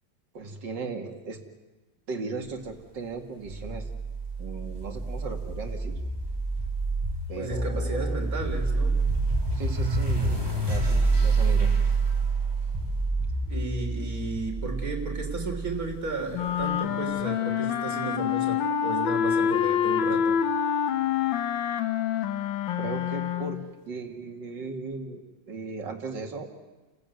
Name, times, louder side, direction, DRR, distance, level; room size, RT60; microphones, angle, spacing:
voice 1, 0.3-1.4 2.1-3.9 4.4-6.0 7.3-8.2 9.5-11.7 22.7-26.5, right 4 dB, 70° right, 4 dB, 2.8 m, -37 dB
sound 1, 3.4-16.6, right 3 dB, 10° right, 4.8 m, -27 dB
voice 2, 7.4-9.0 13.5-20.4, right 3 dB, 50° right, 2 dB, 3.9 m, -34 dB
sound 2, 16.3-23.7, left 8 dB, 85° left, 1.8 m, -26 dB
30.0 x 15.5 x 9.3 m, 1.2 s
omnidirectional pair, 2.0 m